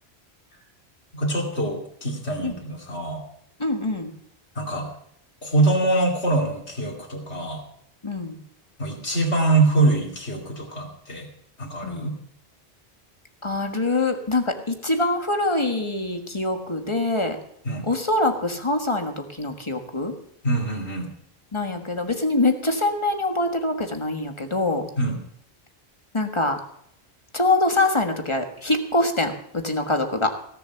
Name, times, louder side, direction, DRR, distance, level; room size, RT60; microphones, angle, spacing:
voice 1, 1.1-3.2 4.5-4.9 5.4-7.6 8.8-11.3 11.6-12.1 17.6-17.9 20.4-21.1 25.0-25.2, right 2 dB, 85° left, 0 dB, 2.9 m, -24 dB
voice 2, 3.6-4.1 8.0-8.4 11.8-12.1 13.4-17.4 17.8-20.1 21.5-24.9 26.1-26.6 27.3-30.3, left 2 dB, 25° left, 5 dB, 1.5 m, -24 dB
17.0 x 7.1 x 6.9 m, 0.69 s
omnidirectional pair, 1.1 m